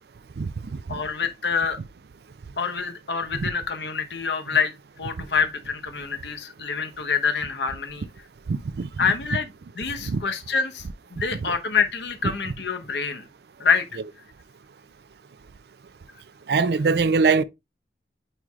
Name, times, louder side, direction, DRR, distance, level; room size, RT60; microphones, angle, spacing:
voice 1, 0.9-1.8 2.6-8.1 9.0-9.5 9.8-10.8 11.1-13.3 13.6-13.8, left 6 dB, 75° left, 0.9 m, -26 dB
voice 2, 8.5-9.1 10.0-10.2 11.4-11.5 16.5-17.4, right 4 dB, 65° right, 0.4 m, -22 dB
8.9 x 4.6 x 2.4 m
head